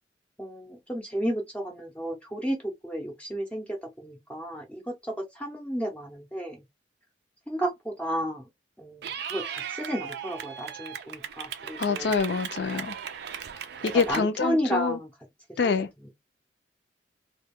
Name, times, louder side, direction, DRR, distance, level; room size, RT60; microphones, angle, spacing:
voice 1, 0.4-6.6 7.5-8.4 8.8-9.0 9.3-12.1 13.8-15.1 15.6-15.7 16.0-16.1, equal, 5° left, 0.5 m, -32 dB
Clapping / Cheering, 9.0-14.2, right 8 dB, 60° right, 0.4 m, -37 dB
voice 2, 11.8-13.0 13.8-15.0 15.6-15.9, left 5 dB, 65° left, 0.4 m, -26 dB
2.2 x 2.2 x 3.4 m
head